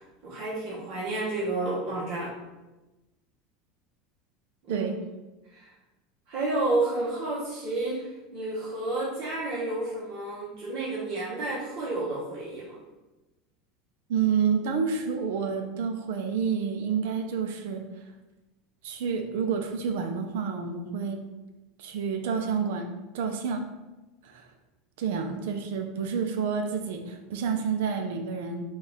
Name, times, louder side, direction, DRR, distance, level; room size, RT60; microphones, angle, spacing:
voice 1, 0.0-2.3 4.7-4.9 5.5-5.7 6.3-12.8, right 2 dB, 55° right, -6 dB, 1.0 m, -31 dB
voice 2, 14.1-17.8 18.8-21.2 21.8-23.6 24.2-24.5 25.0-28.6, right 6 dB, 80° right, 5 dB, 0.5 m, -29 dB
4.2 x 2.4 x 3.5 m, 1.1 s
supercardioid pair, 150°, 0 cm